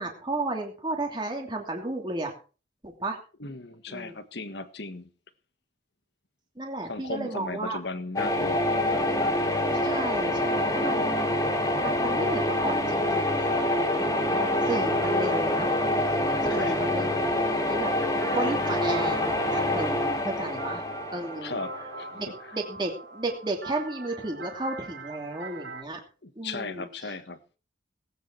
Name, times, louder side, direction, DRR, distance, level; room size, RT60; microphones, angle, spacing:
voice 1, 0.0-2.3 2.8-3.2 3.9-4.1 6.6-7.8 9.8-11.3 11.8-15.7 16.5-17.9 18.3-20.9 21.1-21.6 22.1-26.0 26.4-26.9, right 2 dB, 25° right, 2.8 m, -33 dB
voice 2, 3.4-5.1 6.9-9.4 16.3-16.9 21.4-22.5 26.2-27.4, left 3 dB, 65° left, 1.5 m, -37 dB
sound 1, 8.2-22.0, left 1 dB, 20° left, 2.4 m, -26 dB
sound 2, 18.1-25.8, right 3 dB, 65° right, 2.6 m, -43 dB
18.5 x 9.5 x 4.6 m
head